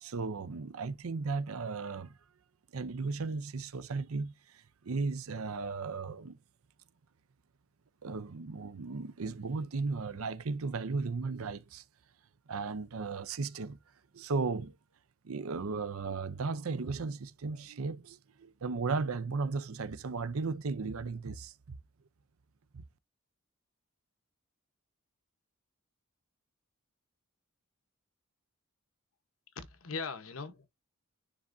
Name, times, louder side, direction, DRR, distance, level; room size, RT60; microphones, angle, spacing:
voice 1, 0.0-2.1 2.7-6.4 8.0-11.8 12.5-13.8 14.1-14.7 15.2-21.8 22.7-22.8, right 4 dB, 80° right, 0.6 m, -35 dB
voice 2, 29.5-30.7, left 4 dB, 75° left, 1.1 m, -40 dB
10.0 x 3.6 x 2.6 m
head